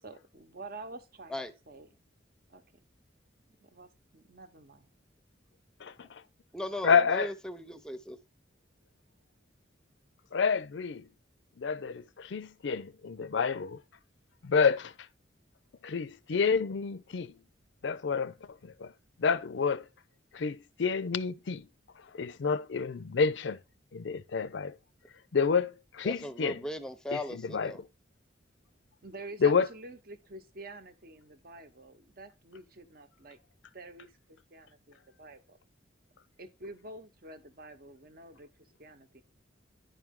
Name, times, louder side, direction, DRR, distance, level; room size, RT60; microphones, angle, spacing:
voice 1, 0.0-1.4 1.7-1.9 2.5-2.8 3.6-4.9 29.0-33.4 33.7-35.6 36.4-39.2, right 2 dB, 50° right, 0.9 m, -48 dB
voice 2, 5.8-6.2 6.8-7.3 10.3-11.1 11.6-13.8 14.4-14.9 15.8-17.3 17.8-18.3 18.6-18.9 19.2-19.9 20.3-21.7 22.1-23.6 23.9-24.8 25.3-26.6 27.3-27.7 29.4-29.7, left 5 dB, 70° left, 0.5 m, -29 dB
voice 3, 6.5-8.2 26.0-27.8, left 1 dB, 5° left, 0.6 m, -38 dB
10.5 x 4.6 x 3.6 m
head